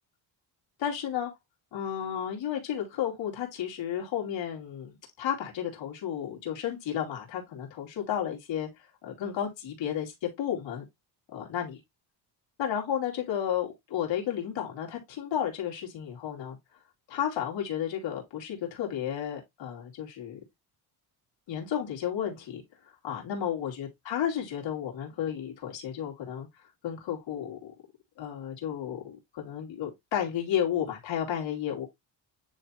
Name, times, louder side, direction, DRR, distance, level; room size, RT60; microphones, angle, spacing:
voice 1, 0.8-1.3 1.7-10.8 11.3-11.8 12.6-16.6 17.1-20.4 21.5-22.6 23.0-26.5 26.8-27.7 28.2-31.9, left 9 dB, 75° left, 2.8 m, -32 dB
9.7 x 3.4 x 2.9 m
cardioid pair, 115°, 46 cm